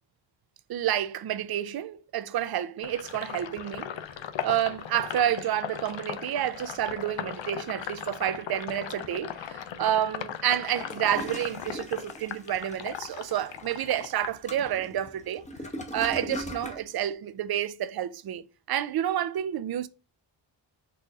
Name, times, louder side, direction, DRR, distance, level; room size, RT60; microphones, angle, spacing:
voice 1, 0.7-3.9 4.4-15.5 15.9-19.9, right 11 dB, 55° right, 0.5 m, -29 dB
Sink (filling or washing), 2.8-15.1 15.4-16.9, left 9 dB, 75° left, 0.6 m, -38 dB
Toilet flush, 10.7-16.9, left 1 dB, 15° left, 0.9 m, -41 dB
4.2 x 2.6 x 4.6 m
cardioid pair, 70°, 45 cm